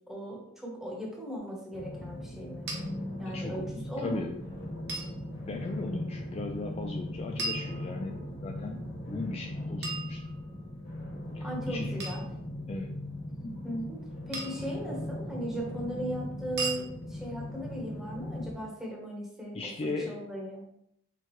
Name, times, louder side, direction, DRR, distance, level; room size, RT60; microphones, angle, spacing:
voice 1, 0.1-2.7 3.2-4.2 11.4-12.2 13.4-20.7, equal, ahead, -2 dB, 1.1 m, -37 dB
sound 1, 1.7-18.5, left 1 dB, 60° left, 1.3 m, -39 dB
Glass Clink Pack, 2.7-2.8 4.9-5.1 7.4-8.3 9.8-10.7 12.0-12.3 14.3-14.7 16.6-16.8, right 3 dB, 55° right, 1.0 m, -36 dB
voice 2, 3.3-3.7 4.0-4.4 5.4-10.2 11.3-12.0 12.7-12.9 19.5-20.2, left 3 dB, 30° left, 3 dB, 0.3 m, -37 dB
4.5 x 3.8 x 3.1 m, 0.74 s
head